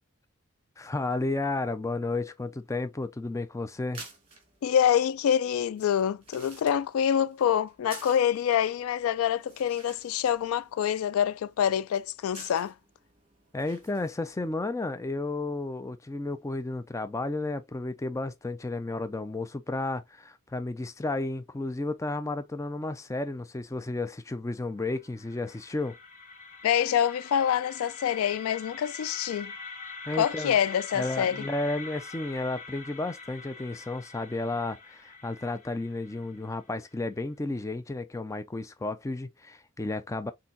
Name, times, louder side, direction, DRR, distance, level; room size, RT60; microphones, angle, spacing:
voice 1, 0.8-4.0 13.5-26.0 30.1-30.6 30.9-40.3, left 2 dB, 15° left, 0.3 m, -32 dB
sound 1, 3.7-14.5, right 3 dB, 30° right, 1.8 m, -52 dB
voice 2, 4.6-12.7 26.6-29.5 30.2-31.5, left 9 dB, 90° left, 0.3 m, -26 dB
sound 2, 24.9-36.9, left 4 dB, 35° left, 0.8 m, -44 dB
4.4 x 3.7 x 2.5 m
head